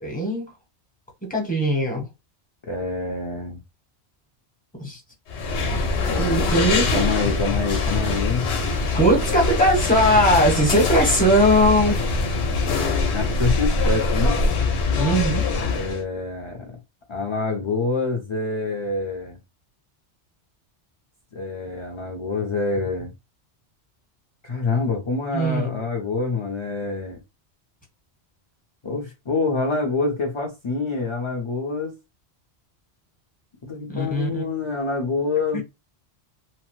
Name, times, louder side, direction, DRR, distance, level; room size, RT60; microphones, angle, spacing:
voice 1, 0.0-0.5 1.3-2.1 4.8-5.0 6.2-7.0 8.9-12.2 15.0-15.4 25.3-25.7 33.9-34.4 35.5-35.6, equal, 10° left, 0.9 m, -20 dB
voice 2, 2.7-3.6 6.1-8.5 13.1-14.4 15.7-16.8 17.1-19.4 21.3-23.1 24.4-27.2 28.8-31.9 33.6-35.6, left 3 dB, 35° left, 0.5 m, -26 dB
sound 1, 5.3-16.0, left 3 dB, 75° left, 1.0 m, -23 dB
2.9 x 2.1 x 3.0 m
omnidirectional pair, 1.1 m